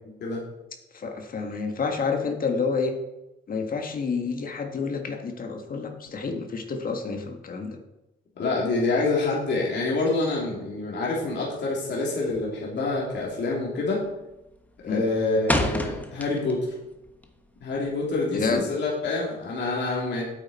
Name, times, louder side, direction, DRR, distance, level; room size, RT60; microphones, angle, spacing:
voice 1, 0.9-3.0 3.5-7.8 14.8-15.0 18.3-18.7, left 4 dB, 45° left, 4 dB, 1.6 m, -29 dB
voice 2, 8.4-14.0 14.8-16.7 17.6-20.2, left 3 dB, 60° left, -4 dB, 2.9 m, -26 dB
sound 1, 12.3-12.7 12.9-13.3 13.6-14.1 14.4-16.7 17.1-18.5, left 1 dB, 10° left, 1.2 m, -29 dB
9.0 x 7.9 x 4.2 m, 0.95 s
cardioid pair, 90°, 20 cm